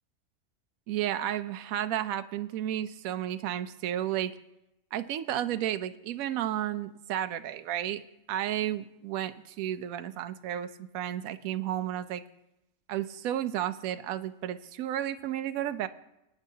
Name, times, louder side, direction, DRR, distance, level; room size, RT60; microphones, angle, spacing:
voice 1, 0.9-4.3 4.9-8.0 8.3-12.2 12.9-15.9, right 11 dB, 80° right, 11 dB, 1.0 m, -32 dB
25.5 x 9.2 x 2.8 m, 0.89 s
omnidirectional pair, 1.5 m